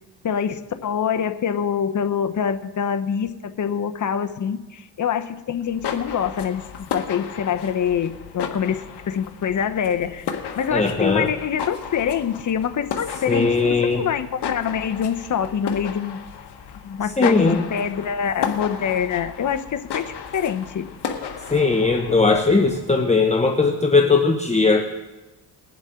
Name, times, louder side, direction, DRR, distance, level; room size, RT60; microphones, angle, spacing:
voice 1, 0.2-10.2 10.5-16.2 16.8-20.9, left 8 dB, 45° left, 8 dB, 1.0 m, -25 dB
sound 1, 5.6-22.9, left 7 dB, 65° left, 1.5 m, -34 dB
voice 2, 10.7-11.3 13.3-14.0 17.2-17.6 21.5-24.8, left 3 dB, 15° left, 2 dB, 1.1 m, -18 dB
22.0 x 7.3 x 3.8 m, 1.1 s
cardioid pair, 80°, 43 cm